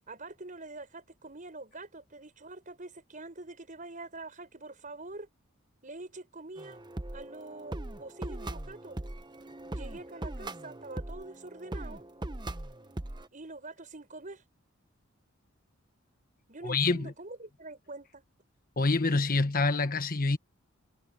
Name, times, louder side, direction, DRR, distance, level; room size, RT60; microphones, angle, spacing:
voice 1, 0.1-5.3 5.8-6.8 7.1-9.0 9.7-12.0 13.3-14.4 16.5-18.2, right 2 dB, 40° right, 6.4 m, -45 dB
sound 1, 6.6-13.3, right 1 dB, 20° right, 0.9 m, -40 dB
voice 2, 16.6-17.1 18.8-20.4, left 3 dB, 45° left, 1.3 m, -26 dB
head